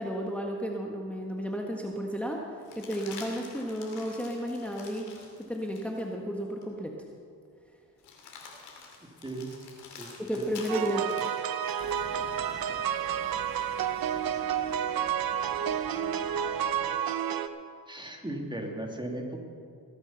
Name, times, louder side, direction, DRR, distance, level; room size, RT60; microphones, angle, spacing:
voice 1, 0.0-2.4 2.8-5.1 5.4-6.9 10.2-11.1, equal, 5° left, 0 dB, 1.5 m, -32 dB
sound 1, 1.0-1.1 2.6-6.1 6.6-6.7 8.0-12.1 14.3-15.1, left 5 dB, 90° left, 2.6 m, -48 dB
voice 2, 9.2-9.5 10.0-10.5 12.1-12.4 17.9-19.4, right 1 dB, 10° right, 1 dB, 2.6 m, -37 dB
sound 2, 10.7-17.5, right 9 dB, 65° right, 0.8 m, -30 dB
sound 3, 11.8-17.0, left 4 dB, 30° left, 1.1 m, -48 dB
20.0 x 8.2 x 5.8 m, 2.4 s
cardioid pair, 65°, 38 cm